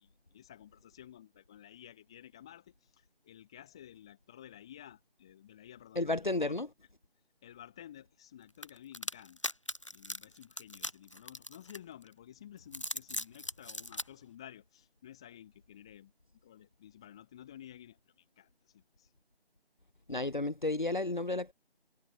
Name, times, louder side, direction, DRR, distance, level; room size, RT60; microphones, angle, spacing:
voice 1, 0.0-6.6 7.4-9.5 9.9-19.1, left 11 dB, 5° left, 3.3 m, -53 dB
voice 2, 6.0-6.7 20.1-21.5, left 2 dB, 50° left, 0.6 m, -32 dB
sound 1, 8.6-12.1 12.6-14.1, left 1 dB, 30° left, 1.4 m, -39 dB
figure-of-eight pair, 170°, 32 cm